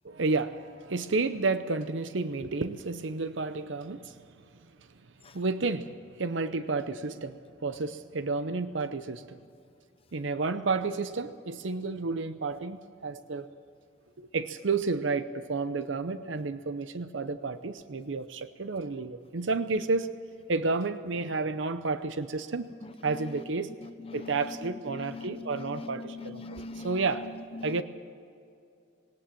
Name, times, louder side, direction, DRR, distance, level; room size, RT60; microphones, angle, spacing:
voice 1, 0.0-4.1 5.3-5.9 6.2-9.4 10.1-13.5 14.2-20.1 20.5-22.7 23.0-23.7 24.1-27.2 27.6-27.8, right 3 dB, 80° right, 11 dB, 0.7 m, -31 dB
voice 2, 22.8-23.5 23.8-27.8, left 3 dB, 30° left, 10 dB, 0.8 m, -42 dB
19.5 x 18.5 x 7.5 m, 2.5 s
head